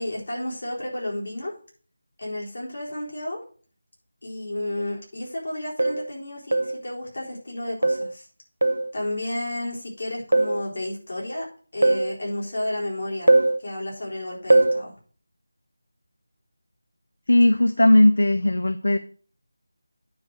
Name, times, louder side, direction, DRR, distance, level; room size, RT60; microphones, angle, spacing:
voice 1, 0.0-1.5 2.2-3.4 4.2-8.3 8.9-11.5 11.7-13.3 13.6-14.9, left 1 dB, 55° left, -3 dB, 4.0 m, -32 dB
sound 1, 4.8-4.9 5.8-6.1 6.5-6.8 7.8-8.1 8.6-8.9 10.3-10.6 11.8-12.1 13.3-13.6 14.5-14.8, right 2 dB, 85° right, 0.4 m, -20 dB
voice 2, 17.3-19.0, left 1 dB, 75° left, 10 dB, 0.6 m, -17 dB
9.4 x 4.1 x 6.1 m, 0.42 s
figure-of-eight pair, 175°, 0 cm